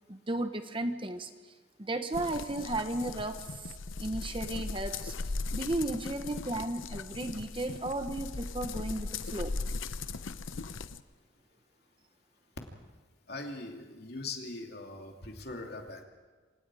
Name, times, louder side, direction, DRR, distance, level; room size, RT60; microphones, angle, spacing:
voice 1, 0.1-1.3 1.8-3.5 4.0-5.1 5.5-9.5, right 2 dB, 25° right, 8 dB, 1.0 m, -34 dB
sound 1, 2.1-11.0, left 3 dB, 90° left, 0.8 m, -38 dB
voice 2, 13.3-16.0, left 3 dB, 55° left, 2 dB, 2.9 m, -41 dB
27.0 x 27.0 x 4.9 m, 1.4 s
head